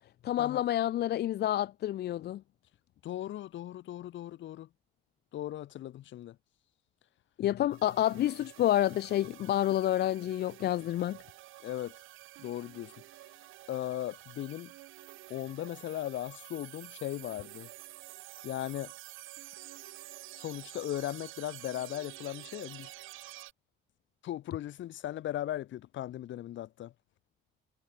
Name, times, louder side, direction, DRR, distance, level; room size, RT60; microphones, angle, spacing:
voice 1, 0.2-2.4 7.4-11.2, left 12 dB, 55° left, 0.4 m, -29 dB
voice 2, 3.0-4.7 5.3-6.4 11.6-12.0 12.4-12.9 13.7-14.7 15.3-17.7 18.4-18.9 20.4-22.9 24.2-26.9, left 13 dB, 70° left, 1.1 m, -38 dB
sound 1, 7.7-23.5, right 17 dB, 90° right, 1.0 m, -49 dB
cardioid pair, 90°, 20 cm